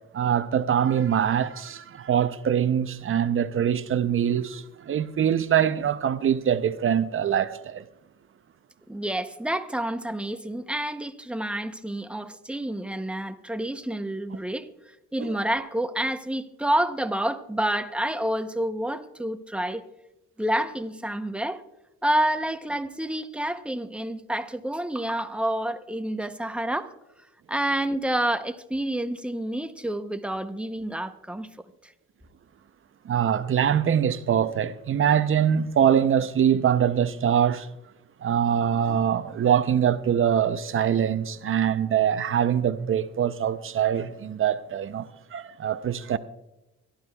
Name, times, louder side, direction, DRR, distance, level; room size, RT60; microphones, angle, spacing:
voice 1, 0.1-7.9 15.2-15.3 33.0-37.7 38.2-46.2, right 9 dB, 45° right, 0.6 m, -23 dB
voice 2, 8.9-14.7 15.1-19.8 20.4-21.6 22.0-26.9 27.5-31.5 31.8-31.9, right 1 dB, 5° right, 0.7 m, -28 dB
25.0 x 11.5 x 2.3 m
cardioid pair, 90°, 30 cm